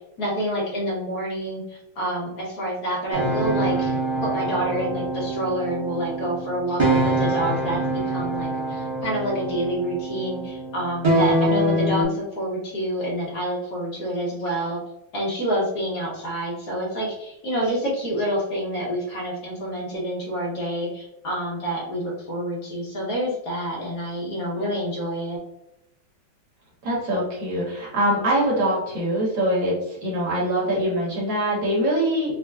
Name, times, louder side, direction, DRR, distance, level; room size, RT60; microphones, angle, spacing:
voice 1, 0.2-14.8 15.1-25.4, right 1 dB, 60° left, -5 dB, 1.4 m, -28 dB
sound 1, 3.1-12.0, right 1 dB, 30° right, 0.5 m, -25 dB
voice 2, 26.8-32.3, right 1 dB, 65° right, -5 dB, 2.0 m, -23 dB
5.0 x 2.2 x 2.2 m, 0.83 s
omnidirectional pair, 2.2 m